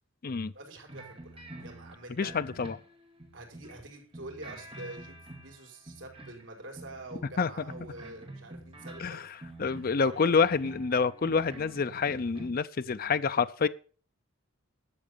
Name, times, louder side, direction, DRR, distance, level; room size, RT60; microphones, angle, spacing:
voice 1, 0.5-2.3 3.3-9.3 9.9-10.5, right 2 dB, 70° right, 4.9 m, -46 dB
sound 1, 0.9-3.8 4.1-6.5 6.7-12.5, right 1 dB, 30° right, 2.3 m, -47 dB
voice 2, 2.2-2.8 7.4-7.5 9.0-9.2 9.6-13.7, left 5 dB, 45° left, 0.5 m, -27 dB
12.5 x 7.6 x 6.8 m
head